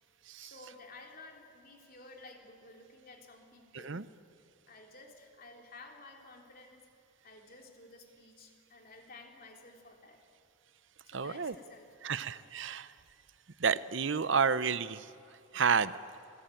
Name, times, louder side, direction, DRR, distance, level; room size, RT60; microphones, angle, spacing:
voice 1, 0.4-4.0 4.7-6.9 7.2-10.2 11.0-12.5, left 2 dB, 45° left, 1 dB, 3.3 m, -53 dB
voice 2, 11.1-11.5 12.0-12.9 13.6-15.1 15.5-15.9, right 6 dB, 60° right, 15 dB, 0.7 m, -30 dB
28.0 x 19.5 x 9.2 m, 2.6 s
head